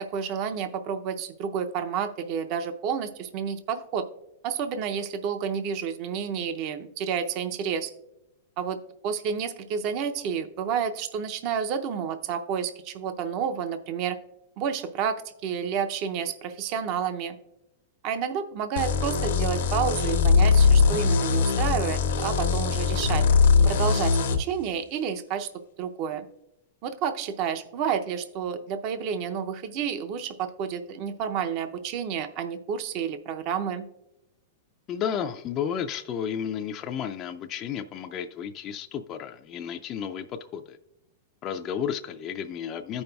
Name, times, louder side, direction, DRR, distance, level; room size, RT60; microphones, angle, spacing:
voice 1, 0.0-4.1 4.4-7.9 8.6-8.8 9.0-14.2 14.6-17.4 18.0-23.2 23.6-25.5 25.8-26.3 26.8-33.8, right 7 dB, 45° right, 8 dB, 0.5 m, -30 dB
sound 1, 18.8-24.4, left 5 dB, 80° left, 0.8 m, -21 dB
voice 2, 34.9-40.8 41.4-43.0, left 8 dB, 30° left, 6 dB, 0.3 m, -32 dB
14.5 x 5.3 x 2.3 m, 0.88 s
hypercardioid pair, 140°, 0 cm